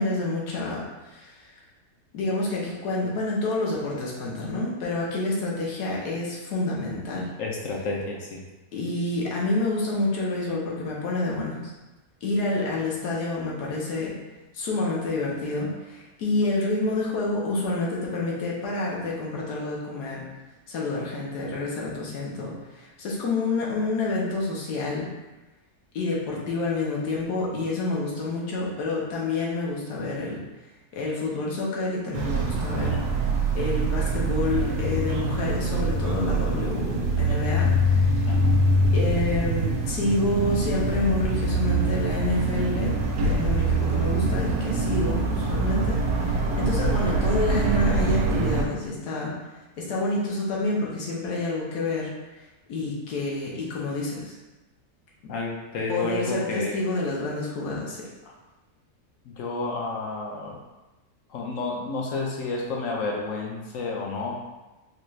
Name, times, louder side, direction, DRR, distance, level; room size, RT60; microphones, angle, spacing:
voice 1, 0.0-1.4 2.1-7.3 8.7-11.7 12.2-14.1 14.5-20.3 20.7-25.1 25.9-30.4 30.9-33.0 33.5-38.3 38.9-43.0 43.2-49.3 49.8-54.4 55.2-55.3 55.9-58.1, left 2 dB, 85° left, -4 dB, 1.4 m, -28 dB
voice 2, 7.4-8.4 38.3-38.6 55.3-56.8 59.3-60.6 61.3-64.4, left 3 dB, 65° left, -1 dB, 0.9 m, -30 dB
sound 1, 32.1-48.6, right 2 dB, 85° right, 1.2 m, -24 dB
4.1 x 2.3 x 3.1 m, 1.1 s
omnidirectional pair, 1.7 m